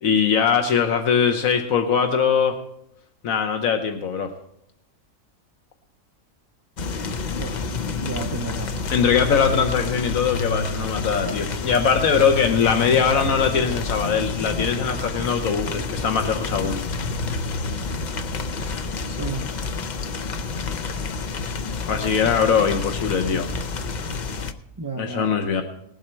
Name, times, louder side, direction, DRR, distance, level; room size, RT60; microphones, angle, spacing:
voice 1, 0.0-2.6 3.2-4.3 8.9-16.8 21.9-23.5 25.0-25.6, left 6 dB, 80° left, 5 dB, 1.3 m, -21 dB
sound 1, 6.8-24.5, left 4 dB, 45° left, 0.6 m, -29 dB
voice 2, 8.0-8.9 19.0-19.5 24.8-25.3, right 3 dB, 25° right, 3 dB, 0.5 m, -32 dB
19.0 x 7.8 x 4.5 m, 0.76 s
omnidirectional pair, 1.4 m